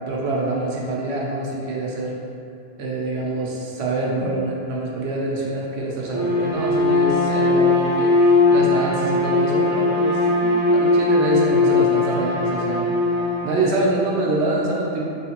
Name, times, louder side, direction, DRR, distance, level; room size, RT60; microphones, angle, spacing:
voice 1, 0.1-2.2 2.8-12.9 13.4-15.0, right 2 dB, 65° right, -3 dB, 0.8 m, -25 dB
Bowed string instrument, 6.0-13.6, left 3 dB, 30° right, 0.3 m, -19 dB
3.2 x 3.1 x 2.9 m, 2.5 s
omnidirectional pair, 1.3 m